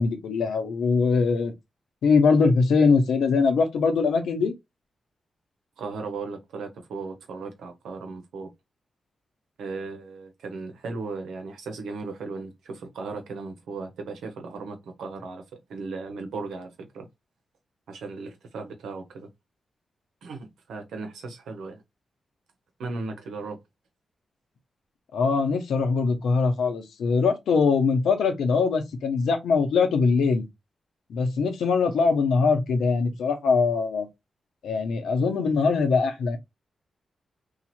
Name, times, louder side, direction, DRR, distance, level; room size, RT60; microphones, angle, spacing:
voice 1, 0.0-1.5 2.0-4.5 25.1-30.5 31.1-34.1 34.6-36.4, left 4 dB, 85° left, 0.8 m, -22 dB
voice 2, 5.8-8.5 9.6-15.4 15.7-17.1 17.9-19.3 20.2-21.8 22.8-23.6, right 4 dB, 85° right, 0.8 m, -36 dB
2.9 x 2.4 x 4.1 m
supercardioid pair, 45°, 0 cm